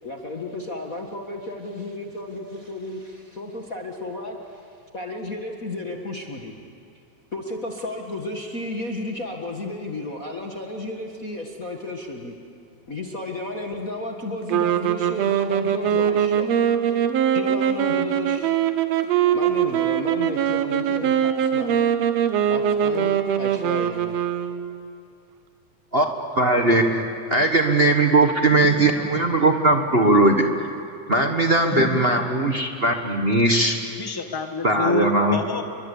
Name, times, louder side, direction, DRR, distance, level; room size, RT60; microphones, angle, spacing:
voice 1, 0.0-4.6 4.9-6.5 7.3-12.3 12.9-16.5 16.9-17.0 17.3-18.5 19.0-21.8 22.5-24.2, left 2 dB, 35° left, 0 dB, 1.7 m, -33 dB
sound 1, 14.5-24.9, right 9 dB, 65° right, 2.1 m, -22 dB
voice 2, 26.3-27.0 27.3-30.5 31.1-33.8 34.6-35.4, right 2 dB, 40° right, 3 dB, 0.8 m, -19 dB
voice 3, 28.7-29.4 31.6-32.3 34.0-35.6, left 2 dB, 20° left, 5 dB, 0.6 m, -29 dB
29.0 x 23.0 x 8.4 m, 2.4 s
omnidirectional pair, 3.4 m